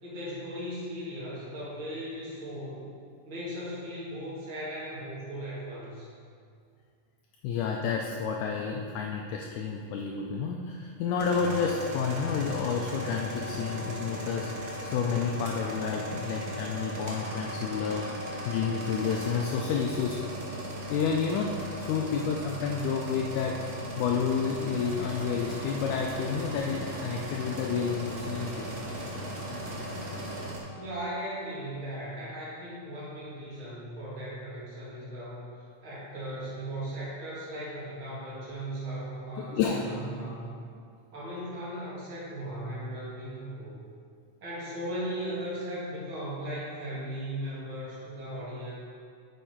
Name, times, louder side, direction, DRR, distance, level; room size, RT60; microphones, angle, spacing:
voice 1, 0.0-2.8 3.2-6.1 30.7-35.5 35.8-40.6 41.1-43.8 44.4-48.8, right 1 dB, 40° right, -8 dB, 2.8 m, -37 dB
voice 2, 7.4-14.5 14.8-18.1 18.5-20.2 20.7-23.6 24.0-28.6 39.4-39.8, left 6 dB, 80° left, 1 dB, 1.9 m, -30 dB
sound 1, 11.2-30.6, equal, 80° right, 0.8 m, -37 dB
sound 2, 24.6-30.4, equal, 20° right, 2.2 m, -43 dB
8.2 x 6.4 x 4.5 m, 2.3 s
omnidirectional pair, 3.8 m